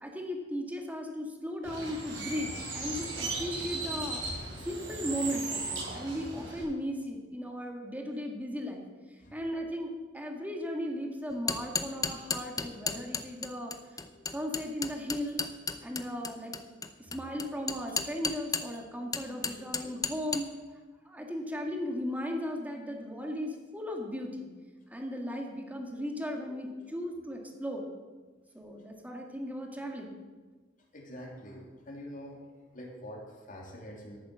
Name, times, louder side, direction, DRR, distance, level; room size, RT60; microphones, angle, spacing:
voice 1, 0.0-8.8 9.1-14.0 14.3-15.4 15.8-16.5 17.0-20.5 21.0-24.5 24.9-27.9 28.5-30.2, equal, 10° right, 1 dB, 1.9 m, -36 dB
Bird, 1.6-6.6, right 3 dB, 80° right, 5.1 m, -37 dB
sound 1, 11.3-18.8 19.1-20.4, left 5 dB, 20° left, 0.7 m, -33 dB
voice 2, 30.9-32.4 32.7-34.2, equal, 45° left, 0 dB, 2.9 m, -45 dB
11.5 x 9.0 x 7.6 m, 1.4 s
head